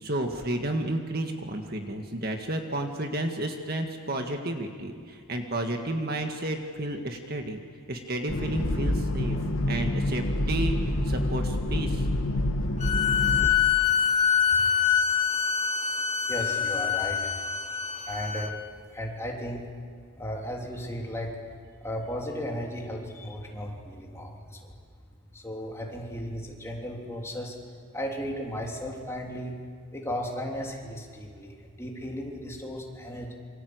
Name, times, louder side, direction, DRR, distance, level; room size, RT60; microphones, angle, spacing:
voice 1, 0.0-7.6 7.9-9.4 9.7-10.8 11.0-12.0 14.6-14.7, right 1 dB, 45° right, 4 dB, 1.9 m, -31 dB
sound 1, 8.3-13.5, left 1 dB, 75° left, 2.1 m, -27 dB
sound 2, 12.8-18.5, left 7 dB, 30° left, 1.5 m, -25 dB
voice 2, 16.3-17.3 18.0-18.5 18.9-19.7 20.2-21.4 21.8-24.7 25.3-27.6 27.9-29.5 29.9-33.3, equal, 10° left, -1 dB, 3.3 m, -35 dB
27.5 x 25.5 x 8.1 m, 2.1 s
head